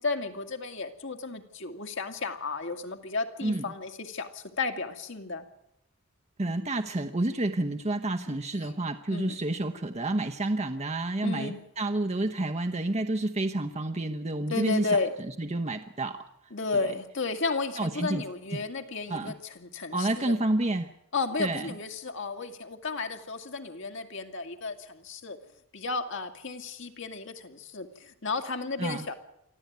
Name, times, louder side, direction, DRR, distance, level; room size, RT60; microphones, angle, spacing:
voice 1, 0.0-5.4 8.3-8.4 8.6-8.7 9.1-9.4 11.2-11.6 14.5-15.1 16.5-20.3 21.1-25.4 25.7-29.1, left 4 dB, 60° left, 5 dB, 2.3 m, -33 dB
voice 2, 6.4-15.0 15.4-16.2 16.7-16.9 17.8-18.2 18.5-18.6 19.1-19.3 19.9-20.9 21.4-21.7 28.8-29.1, right 2 dB, 30° right, 6 dB, 0.9 m, -29 dB
24.5 x 14.5 x 9.4 m, 0.79 s
head